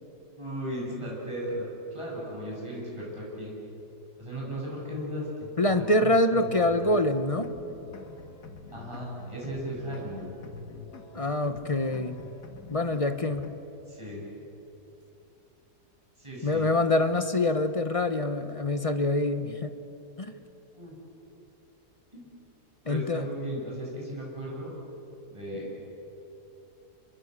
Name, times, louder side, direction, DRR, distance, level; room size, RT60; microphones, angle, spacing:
voice 1, 0.3-3.6 4.2-5.5 5.8-6.9 8.7-10.3 13.9-14.2 16.2-16.7 20.7-20.9 22.1-22.3 22.8-24.7 25.3-25.8, equal, 15° right, -5 dB, 8.1 m, -36 dB
voice 2, 5.6-7.5 11.1-12.2 12.7-13.5 16.4-19.7 20.2-20.3 22.9-23.2, left 2 dB, 25° left, 9 dB, 0.9 m, -25 dB
sound 1, 6.7-13.5, left 4 dB, 75° left, 2.2 m, -46 dB
29.0 x 22.0 x 8.2 m, 2.9 s
omnidirectional pair, 1.7 m